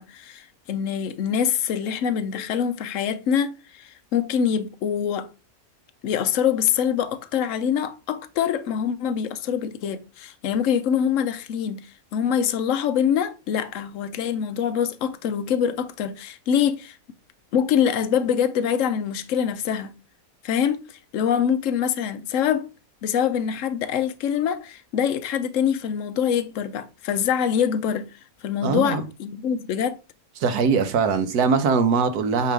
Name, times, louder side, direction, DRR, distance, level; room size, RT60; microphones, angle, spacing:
voice 1, 0.0-5.3 6.0-11.9 12.1-17.0 17.5-19.9 20.4-22.7 23.0-28.1 28.4-30.0, left 8 dB, 65° left, 1.0 m, -24 dB
voice 2, 28.6-29.0 30.4-32.5, right 5 dB, 90° right, 1.4 m, -21 dB
8.3 x 3.0 x 4.7 m
omnidirectional pair, 1.6 m